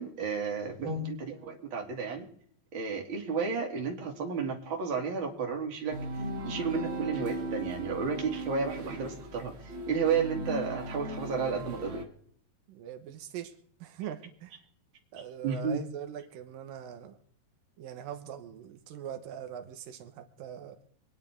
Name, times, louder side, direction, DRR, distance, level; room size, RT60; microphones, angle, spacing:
voice 1, 0.0-2.3 2.7-6.0 6.4-12.0 15.4-15.8, right 5 dB, 40° right, 2.6 m, -32 dB
sound 1, 5.9-12.0, right 1 dB, 55° right, 0.6 m, -37 dB
voice 2, 12.7-13.5 13.8-14.6 15.1-17.2 17.8-20.8, right 9 dB, 85° right, 2.8 m, -42 dB
25.0 x 10.5 x 3.5 m
omnidirectional pair, 3.9 m